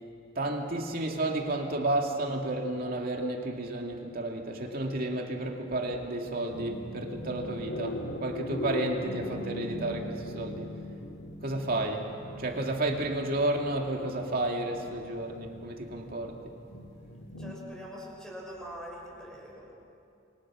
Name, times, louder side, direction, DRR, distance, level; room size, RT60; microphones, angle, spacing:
voice 1, 0.4-10.8 11.4-16.6, right 2 dB, 45° right, 2 dB, 2.5 m, -32 dB
sound 1, 6.5-17.5, left 1 dB, 60° left, 1.8 m, -40 dB
voice 2, 17.4-19.7, equal, 5° left, -3 dB, 5.7 m, -43 dB
29.0 x 23.0 x 6.3 m, 2.6 s
head